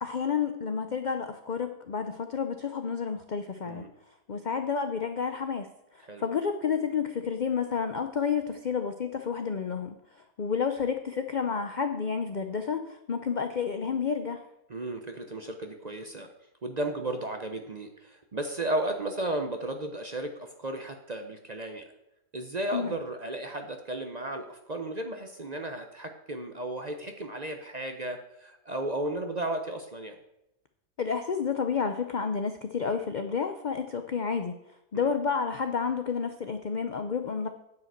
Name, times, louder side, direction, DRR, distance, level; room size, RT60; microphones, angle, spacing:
voice 1, 0.0-3.8 4.3-5.7 6.2-9.9 10.4-14.4 22.7-22.9 31.0-34.5 34.9-37.5, left 6 dB, 75° left, 7 dB, 0.4 m, -30 dB
voice 2, 14.7-16.3 16.6-21.8 22.3-30.1 34.9-35.1, right 1 dB, 40° right, 5 dB, 0.6 m, -34 dB
9.5 x 5.1 x 8.0 m, 0.87 s
omnidirectional pair, 1.7 m